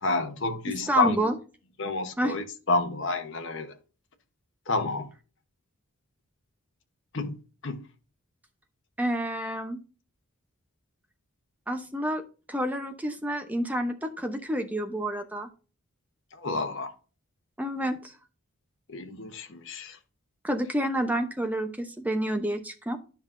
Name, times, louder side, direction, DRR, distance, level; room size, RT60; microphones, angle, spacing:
voice 1, 0.0-1.2 1.8-3.7 4.7-5.1 7.1-7.3 7.6-7.8 16.4-16.9 18.9-20.0, left 3 dB, 55° left, 1.0 m, -29 dB
voice 2, 0.7-1.4 2.2-2.4 9.0-9.8 11.7-12.2 12.5-15.5 17.6-18.1 20.4-23.0, right 1 dB, 5° right, 0.8 m, -29 dB
10.5 x 5.7 x 2.6 m
head